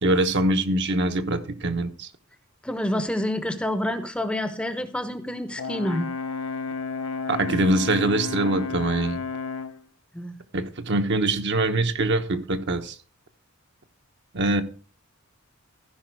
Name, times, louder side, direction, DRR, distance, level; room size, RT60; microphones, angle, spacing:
voice 1, 0.0-2.1 7.3-9.2 10.5-12.9 14.3-14.6, right 2 dB, 55° right, 1.0 m, -23 dB
voice 2, 2.6-6.1 10.1-10.4, left 1 dB, 5° left, 0.7 m, -28 dB
Brass instrument, 5.6-9.8, left 4 dB, 85° left, 0.8 m, -32 dB
15.0 x 5.4 x 4.6 m
head